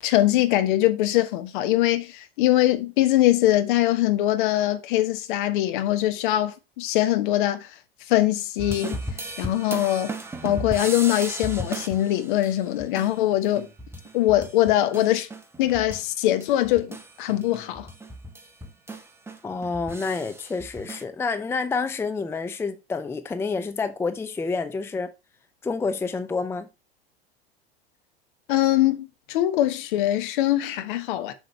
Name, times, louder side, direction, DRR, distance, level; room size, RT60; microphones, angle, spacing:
voice 1, 0.0-7.7 8.1-9.0 9.4-10.1 10.4-13.7 14.1-15.3 15.6-17.9 28.5-31.3, left 14 dB, 55° left, 1.2 m, -22 dB
sound 1, 8.6-16.1 16.4-21.0, right 1 dB, 10° right, 1.3 m, -36 dB
voice 2, 19.4-25.1 25.6-26.7, left 4 dB, 10° left, 0.6 m, -28 dB
7.7 x 6.3 x 3.2 m
figure-of-eight pair, 85°, 31 cm